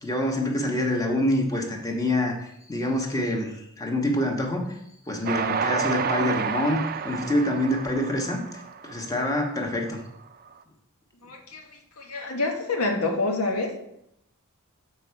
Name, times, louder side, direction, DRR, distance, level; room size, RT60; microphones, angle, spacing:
voice 1, 0.0-2.3 2.7-4.6 5.1-8.4 8.8-10.0, left 1 dB, 15° left, 1 dB, 1.3 m, -26 dB
Train, 5.3-9.7, right 6 dB, 45° right, 0.5 m, -30 dB
voice 2, 11.2-11.6 12.0-13.8, left 2 dB, 85° left, 2 dB, 1.4 m, -27 dB
6.9 x 5.9 x 4.7 m, 0.75 s
head